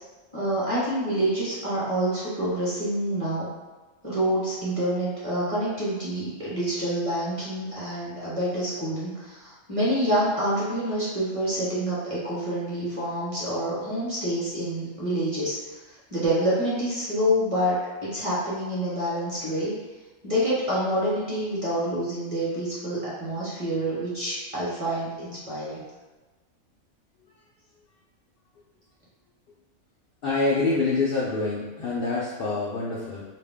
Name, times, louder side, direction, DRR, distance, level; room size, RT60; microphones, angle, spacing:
voice 1, 0.3-3.5 4.0-15.6 16.1-17.8 18.0-19.7 20.2-25.8, right 1 dB, 30° right, -9 dB, 0.9 m, -27 dB
voice 2, 30.2-33.2, left 3 dB, 65° left, -5 dB, 0.5 m, -26 dB
2.5 x 2.1 x 3.4 m, 1.2 s
omnidirectional pair, 1.4 m